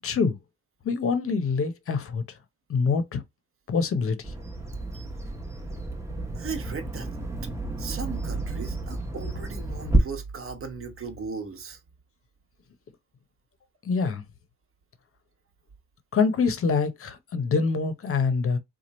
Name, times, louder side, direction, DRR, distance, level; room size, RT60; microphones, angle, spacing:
voice 1, 0.0-0.4 0.8-2.2 2.7-3.2 3.7-4.3 13.8-14.2 16.1-18.6, left 5 dB, 45° left, 0.8 m, -25 dB
Bird vocalization bird call bird song, 4.2-10.0, right 2 dB, 10° right, 0.9 m, -31 dB
voice 2, 6.3-7.1 7.8-11.8, right 5 dB, 45° right, 1.2 m, -35 dB
3.0 x 2.4 x 4.1 m
cardioid pair, 90°, 30 cm